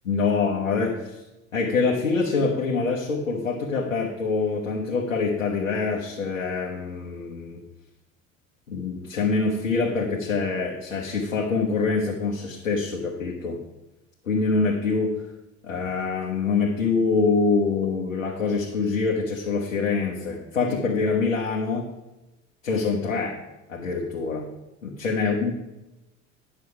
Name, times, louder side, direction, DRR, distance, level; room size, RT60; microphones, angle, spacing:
voice 1, 0.0-1.2 1.5-7.6 8.7-13.6 14.2-15.2 15.6-21.9 22.6-23.4 23.7-24.5 24.8-25.5, left 4 dB, 80° left, -2 dB, 1.2 m, -25 dB
9.4 x 6.4 x 4.7 m, 0.97 s
figure-of-eight pair, 75°, 38 cm